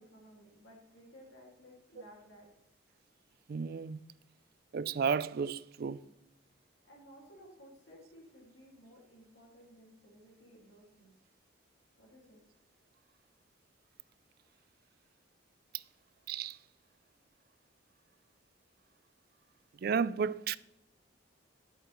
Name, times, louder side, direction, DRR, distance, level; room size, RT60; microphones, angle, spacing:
voice 1, 0.0-2.5 6.8-11.2 12.0-12.4, equal, 75° left, 2.3 m, -57 dB
voice 2, 3.5-4.0 4.7-6.0 15.7-15.8 16.3-16.6 19.8-20.6, right 6 dB, 50° right, 0.3 m, -33 dB
11.0 x 8.0 x 3.1 m
head